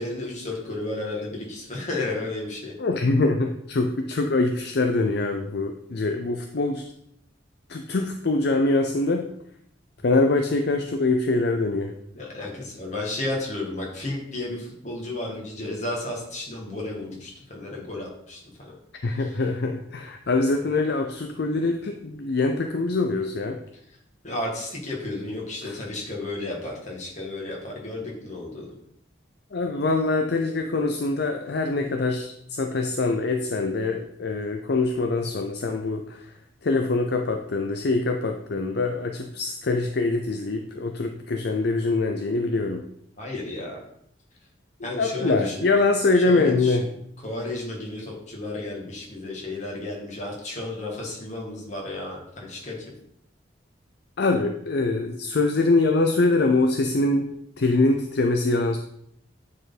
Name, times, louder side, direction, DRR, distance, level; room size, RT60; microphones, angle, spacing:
voice 1, 0.0-2.7 12.1-18.7 19.1-19.4 24.2-28.7 43.2-43.8 44.8-45.7 46.2-46.9 47.2-52.8, left 2 dB, 40° left, -2 dB, 2.2 m, -33 dB
voice 2, 2.8-6.9 7.7-9.3 10.0-11.9 19.0-23.6 25.6-25.8 29.5-36.3 36.6-42.8 44.8-46.9 54.2-57.3 57.6-58.8, left 3 dB, 55° left, 5 dB, 0.6 m, -24 dB
9.5 x 4.4 x 4.1 m, 0.73 s
head